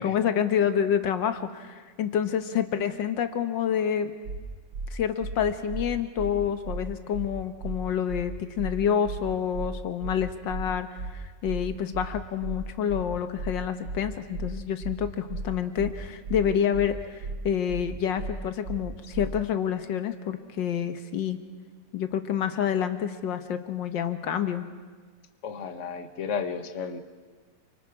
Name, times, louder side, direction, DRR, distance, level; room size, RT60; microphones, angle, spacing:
voice 1, 0.0-4.1 4.9-21.4 21.9-24.7, left 8 dB, 85° left, 9 dB, 1.8 m, -28 dB
sound 1, 4.2-4.4 4.7-4.9 5.2-5.4 5.7-5.8 6.2-6.3 6.6-6.8 7.1-7.3 7.6-7.8 8.1-8.2 8.6-8.7 9.0-9.2 9.5-9.7 10.0-10.2 10.5-10.6 11.0-11.1 11.4-11.6 11.9-12.1 12.4-12.6 12.9-13.0 13.4-13.5 13.8-14.0 14.3-14.5 14.8-15.0 15.3-15.4 15.8-15.9 16.2-16.4 16.7-16.9 17.2-17.4 17.7-17.8 18.2-18.3 18.6-18.8 19.1-19.3, right 3 dB, 85° right, 2.4 m, -34 dB
voice 2, 25.4-27.0, left 6 dB, 45° left, 8 dB, 1.5 m, -33 dB
29.0 x 25.0 x 4.8 m, 1.4 s
omnidirectional pair, 1.9 m